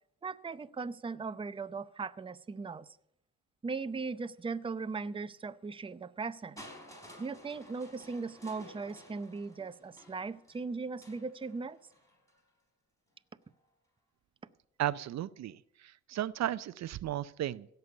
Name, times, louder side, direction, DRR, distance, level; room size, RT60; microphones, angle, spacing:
voice 1, 0.2-2.9 3.6-6.6 7.2-11.8, right 4 dB, 15° right, 12 dB, 0.6 m, -38 dB
Crushing, 6.6-12.5 13.4-13.5, left 1 dB, 10° left, 4.6 m, -54 dB
voice 2, 14.8-17.7, right 12 dB, 60° right, 16 dB, 0.6 m, -35 dB
16.5 x 6.9 x 8.0 m, 0.73 s
cardioid pair, 90°, 30 cm